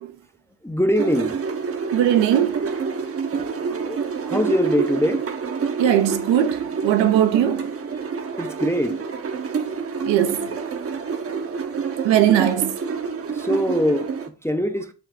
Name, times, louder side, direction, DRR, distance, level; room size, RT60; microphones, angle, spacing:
voice 1, 0.6-1.4 3.3-3.4 3.9-5.3 8.4-9.1 13.3-14.9, equal, 5° left, 0.5 m, -23 dB
sound 1, 1.0-14.3, right 5 dB, 30° right, 0.7 m, -28 dB
voice 2, 1.9-2.7 3.7-3.8 5.8-7.7 10.1-10.5 12.0-12.8, right 11 dB, 75° right, 0.7 m, -19 dB
6.0 x 2.3 x 3.5 m
supercardioid pair, 60°, 46 cm